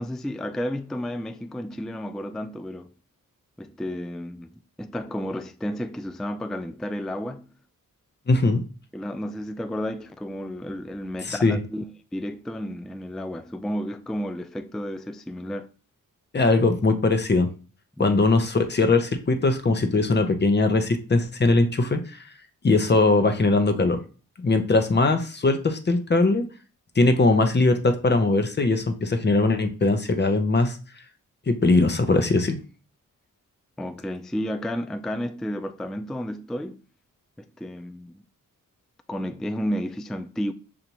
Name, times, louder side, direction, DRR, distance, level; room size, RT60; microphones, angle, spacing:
voice 1, 0.0-2.9 3.6-7.5 8.9-11.8 12.1-15.7 18.0-18.2 33.8-36.8 37.4-38.2 39.1-40.5, equal, ahead, 0.3 m, -32 dB
voice 2, 8.3-8.6 11.2-11.6 16.3-17.5 18.0-22.0 22.6-24.0 24.4-26.4 27.0-30.8 31.5-32.6, left 3 dB, 30° left, 0.8 m, -20 dB
6.8 x 2.5 x 3.0 m
cardioid pair, 60°, 34 cm